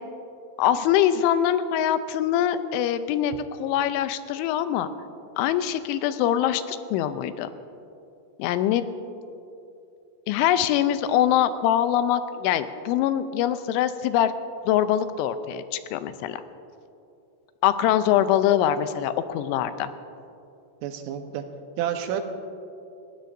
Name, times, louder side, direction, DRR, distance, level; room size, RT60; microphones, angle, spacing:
voice 1, 0.6-4.9 5.4-7.5 8.4-8.9 10.3-14.3 14.7-16.4 17.6-19.9, left 10 dB, 85° left, 11 dB, 3.0 m, -23 dB
voice 2, 20.8-21.4 21.8-22.2, right 10 dB, 90° right, 5 dB, 3.5 m, -29 dB
29.0 x 15.5 x 2.6 m, 2.7 s
omnidirectional pair, 5.4 m